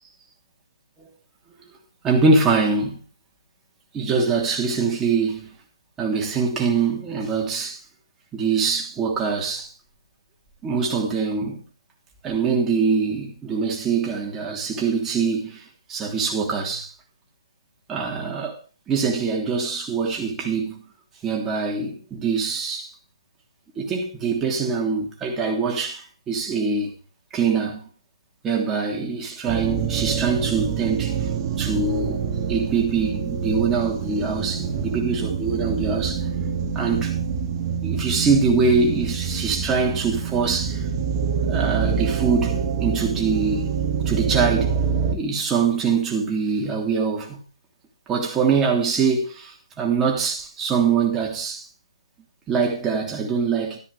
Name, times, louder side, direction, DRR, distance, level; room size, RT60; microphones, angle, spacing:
voice 1, 2.0-3.0 3.9-5.5 6.0-7.8 8.3-9.7 10.6-11.6 12.2-15.6 15.9-16.9 17.9-18.5 18.9-20.8 21.2-22.9 23.8-26.0 26.3-26.9 27.3-27.8 28.4-31.2 31.6-36.2 36.7-37.1 37.8-40.8 41.4-43.7 44.1-44.8 45.1-47.4 48.1-51.6 52.5-53.8, right 5 dB, 10° right, 3.1 m, -23 dB
sound 1, 29.5-45.2, right 6 dB, 30° right, 2.0 m, -26 dB
13.5 x 12.0 x 3.6 m
hypercardioid pair, 155°, 3 cm